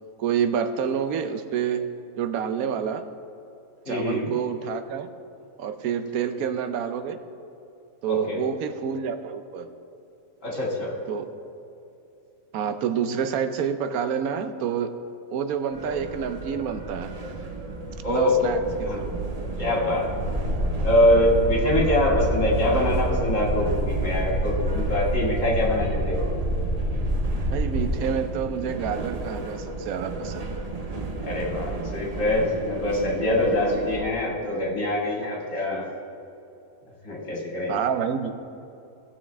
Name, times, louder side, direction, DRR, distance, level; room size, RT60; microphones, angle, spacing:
voice 1, 0.2-1.9 2.2-3.0 3.9-5.1 5.6-7.2 8.0-9.7 11.1-11.3 12.5-14.9 15.3-17.1 18.1-19.1 27.5-30.5 37.7-38.3, right 7 dB, 80° right, 9 dB, 1.1 m, -28 dB
voice 2, 3.9-4.3 8.1-8.4 10.4-10.9 18.0-18.5 18.8-19.0 19.6-20.0 20.8-26.3 31.2-35.8 37.0-37.8, left 1 dB, 60° left, -3 dB, 2.5 m, -24 dB
sound 1, 15.7-34.0, right 2 dB, 35° right, 0.7 m, -34 dB
sound 2, 20.1-27.9, right 1 dB, 10° right, 2.2 m, -27 dB
16.0 x 7.1 x 3.4 m, 2.7 s
omnidirectional pair, 1.5 m